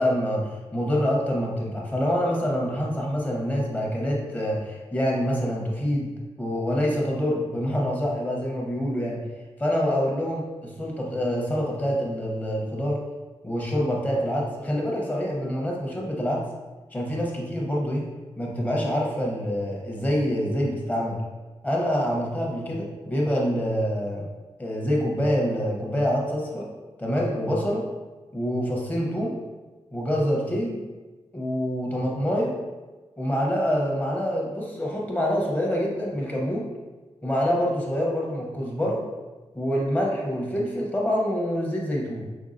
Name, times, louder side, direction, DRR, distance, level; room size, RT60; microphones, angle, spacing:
voice 1, 0.0-6.1 6.4-9.2 9.6-13.0 13.4-16.4 16.9-18.1 18.4-21.2 21.6-24.2 24.6-26.7 27.0-27.9 28.3-29.4 29.9-30.8 31.3-32.6 33.2-36.7 37.2-39.0 39.5-42.2, equal, 15° left, -2 dB, 0.8 m, -26 dB
5.3 x 3.4 x 2.6 m, 1.2 s
wide cardioid pair, 155°, 11 cm